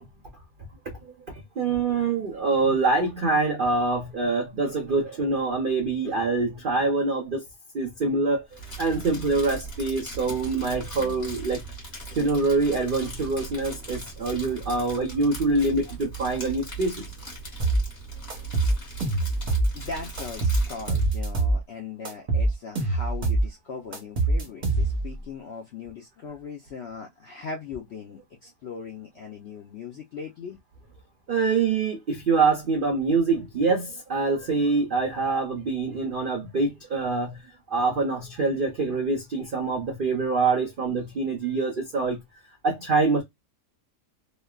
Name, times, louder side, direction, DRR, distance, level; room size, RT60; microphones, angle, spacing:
voice 1, 1.0-7.4 7.7-11.6 12.1-17.1 31.3-42.2 42.6-43.2, right 3 dB, 80° right, 0.4 m, -25 dB
Crumpling crinkling, 8.5-21.1, right 2 dB, 30° left, 1.3 m, -39 dB
sound 1, 17.6-17.8 18.3-19.7 20.2-21.6 22.0-23.5 23.9-25.1, right 2 dB, 35° right, 0.7 m, -24 dB
voice 2, 19.7-30.6, left 5 dB, 75° left, 0.6 m, -39 dB
3.1 x 2.1 x 2.3 m
omnidirectional pair, 1.7 m